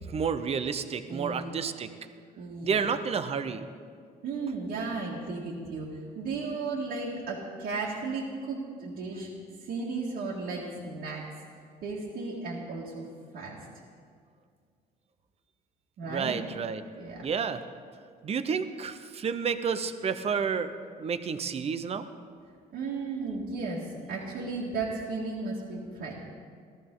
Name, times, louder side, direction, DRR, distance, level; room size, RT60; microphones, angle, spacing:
voice 1, 0.1-1.9 2.6-3.7 16.1-16.8 17.2-17.6 18.2-22.1, right 6 dB, 35° right, 11 dB, 0.8 m, -30 dB
voice 2, 1.1-1.5 2.4-2.8 4.2-9.3 9.6-11.3 11.8-13.1 13.3-13.6 16.0-16.4 16.9-17.3 22.7-26.1, right 3 dB, 70° right, -5 dB, 2.1 m, -35 dB
15.5 x 13.5 x 3.9 m, 2.2 s
cardioid pair, 110°, 17 cm